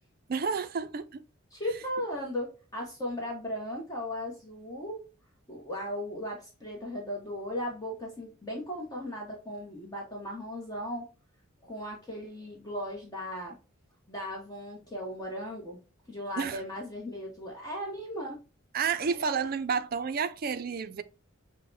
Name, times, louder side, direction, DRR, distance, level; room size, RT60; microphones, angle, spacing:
voice 1, 0.3-1.2 16.4-16.6 18.7-21.0, right 6 dB, 45° right, 0.4 m, -30 dB
voice 2, 1.5-5.0 5.5-11.0 11.6-13.6 14.1-15.8 16.1-18.4 19.2-19.3, equal, 15° left, 0.8 m, -37 dB
6.3 x 2.1 x 2.6 m
head